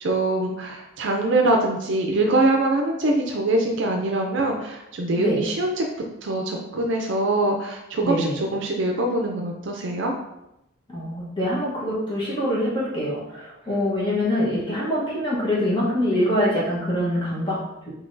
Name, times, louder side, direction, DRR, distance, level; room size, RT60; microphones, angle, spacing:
voice 1, 0.0-5.8 6.2-10.1, right 2 dB, 65° right, 1 dB, 0.5 m, -23 dB
voice 2, 8.0-8.4 10.9-17.9, left 1 dB, 25° left, -7 dB, 1.0 m, -24 dB
5.6 x 2.8 x 2.6 m, 0.88 s
head